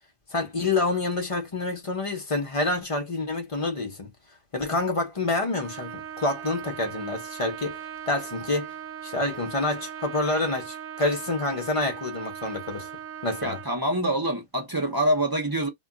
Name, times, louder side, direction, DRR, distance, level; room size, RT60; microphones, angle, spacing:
voice 1, 0.3-4.1 4.5-7.8 8.1-8.7 9.0-12.9 13.2-13.6, left 2 dB, 35° left, 0.6 m, -27 dB
Trumpet, 5.6-13.7, right 9 dB, 80° right, 1.0 m, -39 dB
voice 2, 13.4-15.7, right 1 dB, 25° right, 0.4 m, -25 dB
2.3 x 2.1 x 3.7 m
omnidirectional pair, 1.4 m